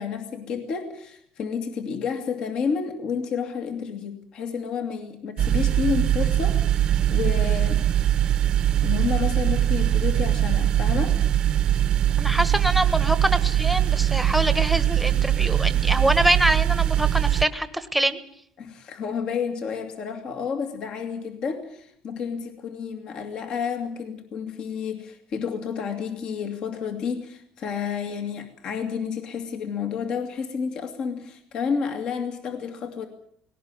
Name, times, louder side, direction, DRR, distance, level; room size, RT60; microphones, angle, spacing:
voice 1, 0.0-7.8 8.8-11.2 18.6-33.1, left 6 dB, 45° left, 6 dB, 2.3 m, -30 dB
sound 1, 5.4-17.4, right 11 dB, 45° right, 1.0 m, -22 dB
voice 2, 12.2-18.2, right 1 dB, ahead, 12 dB, 1.3 m, -24 dB
19.5 x 18.0 x 9.7 m, 0.69 s
cardioid pair, 160°, 2 cm